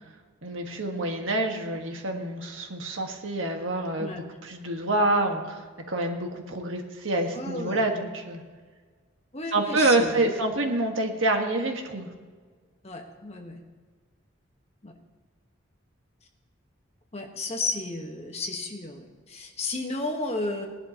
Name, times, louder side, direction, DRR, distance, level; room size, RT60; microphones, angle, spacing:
voice 1, 0.4-5.6 5.9-8.4 9.5-12.1, right 2 dB, 75° right, 2 dB, 1.6 m, -27 dB
voice 2, 7.3-7.9 9.3-10.4 12.8-13.6 14.8-14.9 17.1-20.7, left 2 dB, 30° left, 2 dB, 1.3 m, -33 dB
19.5 x 11.0 x 3.0 m, 1.5 s
head